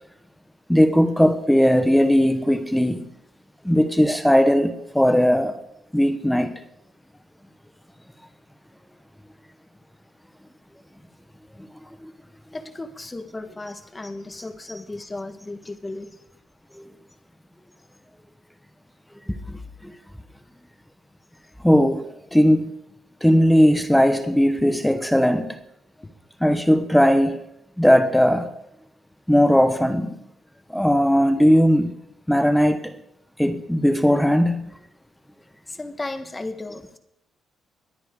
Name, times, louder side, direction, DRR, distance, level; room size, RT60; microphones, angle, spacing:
voice 1, 0.7-3.1 3.6-5.5 5.9-6.6 12.0-12.1 16.8-16.9 19.5-19.9 21.6-22.7 23.2-25.6 26.4-27.4 27.8-28.5 29.3-30.2 30.7-31.9 32.3-32.9 33.4-34.7, equal, 5° left, 1.1 m, -18 dB
voice 2, 12.5-16.2 35.7-37.0, left 2 dB, 20° left, 1.4 m, -35 dB
22.0 x 9.5 x 3.8 m
cardioid pair, 90°, 0 cm